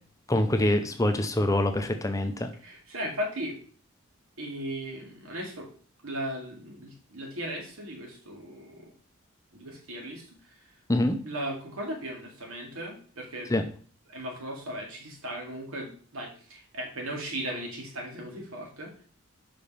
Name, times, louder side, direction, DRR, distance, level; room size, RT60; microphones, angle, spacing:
voice 1, 0.3-2.5 10.9-11.2 13.5-13.6, left 1 dB, 15° left, 7 dB, 0.6 m, -25 dB
voice 2, 2.6-3.6 4.4-5.7 6.0-8.9 9.5-10.3 10.6-10.7 11.2-13.5 14.1-18.9, equal, 90° right, 1 dB, 2.3 m, -37 dB
5.5 x 5.1 x 5.6 m, 0.43 s
head